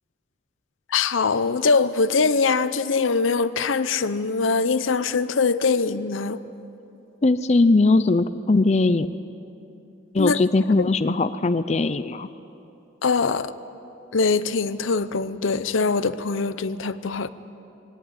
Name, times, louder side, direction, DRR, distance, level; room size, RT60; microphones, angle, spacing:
voice 1, 0.9-6.4 10.2-10.4 13.0-13.5 14.1-17.3, left 4 dB, 90° left, 0.7 m, -22 dB
voice 2, 7.2-9.1 10.1-12.3, left 3 dB, 35° left, 0.5 m, -20 dB
20.0 x 17.5 x 8.9 m
head